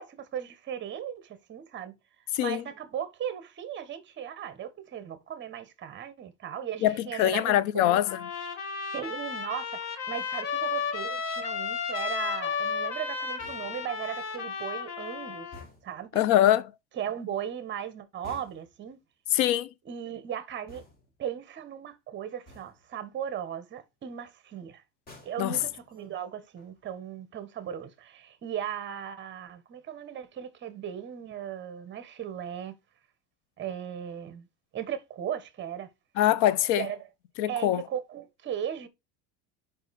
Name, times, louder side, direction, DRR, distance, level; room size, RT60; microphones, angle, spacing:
voice 1, 0.0-1.9 2.4-8.0 8.9-15.5 15.8-16.3 17.0-19.0 19.8-20.8 21.2-24.8 25.2-32.7 33.6-34.5 34.7-35.9 36.8-37.0 37.5-38.9, right 9 dB, 30° right, 1.2 m, -37 dB
voice 2, 6.8-8.2 16.1-16.7 19.3-19.7 25.4-25.6 36.2-36.9 37.4-37.8, left 12 dB, 70° left, 0.7 m, -23 dB
Trumpet, 8.1-15.7, left 6 dB, 45° left, 1.7 m, -33 dB
sound 1, 13.4-14.0 15.5-16.1 18.2-18.8 20.7-21.2 22.5-22.9 25.1-26.2 26.6-26.9, left 2 dB, 25° left, 2.0 m, -51 dB
5.4 x 5.3 x 4.2 m
cardioid pair, 140°, 36 cm